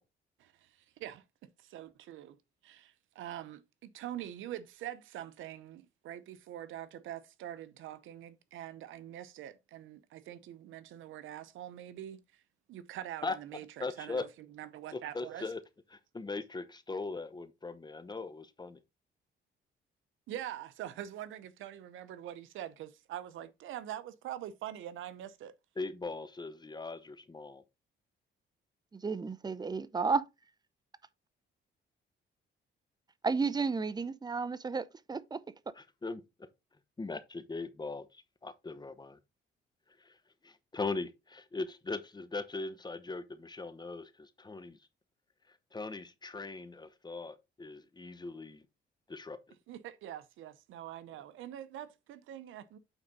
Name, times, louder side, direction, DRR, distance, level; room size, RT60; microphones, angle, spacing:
voice 1, 1.6-2.4 2.6-12.2 12.7-15.5 20.3-25.5 49.7-52.8, right 11 dB, 80° right, 0.8 m, -44 dB
voice 2, 13.8-14.2 14.9-15.6 16.1-18.8 25.8-27.6 35.8-36.2 37.0-38.1 38.4-39.2 40.4-44.8 45.7-48.6 49.1-49.4, left 3 dB, 20° left, 0.9 m, -39 dB
voice 3, 28.9-30.2 33.2-35.4, right 4 dB, 20° right, 0.6 m, -32 dB
9.0 x 3.9 x 3.9 m
cardioid pair, 90°, 20 cm